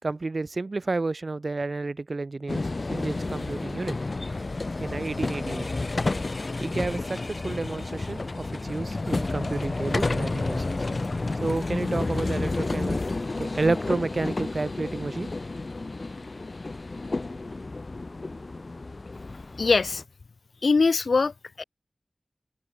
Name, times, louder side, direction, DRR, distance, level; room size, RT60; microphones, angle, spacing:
voice 1, 0.0-2.6 2.9-4.0 4.8-5.7 6.6-10.6 11.4-13.0 13.4-15.3, right 3 dB, 60° right, 3.6 m, -30 dB
sound 1, 2.5-20.0, left 3 dB, 55° left, 4.1 m, -31 dB
voice 2, 19.6-20.0 20.6-21.3 21.6-21.7, left 4 dB, 90° left, 0.5 m, -21 dB
open air
wide cardioid pair, 50°, 0 cm